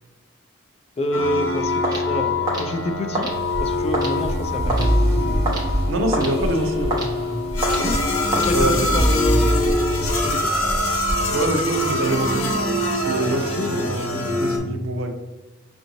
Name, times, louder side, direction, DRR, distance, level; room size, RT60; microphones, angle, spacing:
voice 1, 1.0-3.3 3.6-4.9 7.8-8.0 8.3-10.5 13.3-14.0, left 1 dB, 30° left, 6 dB, 0.3 m, -27 dB
sound 1, 1.1-14.6, left 1 dB, 90° left, 0.8 m, -24 dB
sound 2, 1.8-9.1, right 2 dB, 20° right, 0.9 m, -30 dB
sound 3, 3.3-11.2, equal, 55° left, 1.0 m, -24 dB
voice 2, 5.9-7.1 8.5-8.8 11.3-12.6 13.0-13.5 13.8-15.1, right 1 dB, 80° right, 4 dB, 0.6 m, -25 dB
5.3 x 2.5 x 3.0 m, 1.1 s
head